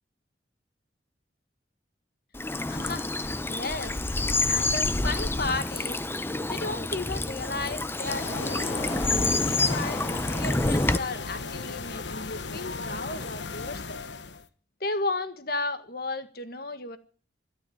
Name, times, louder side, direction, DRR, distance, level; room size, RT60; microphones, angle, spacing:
Bird vocalization bird call bird song / Stream, 2.3-11.0, left 2 dB, 15° left, 0.7 m, -28 dB
voice 1, 2.7-4.0 4.5-6.0 6.5-8.8 9.4-13.8 14.8-17.0, left 3 dB, 55° left, 10 dB, 1.7 m, -34 dB
sound 1, 8.0-14.5, left 4 dB, 80° left, 1.2 m, -36 dB
12.5 x 12.0 x 8.8 m, 0.41 s
head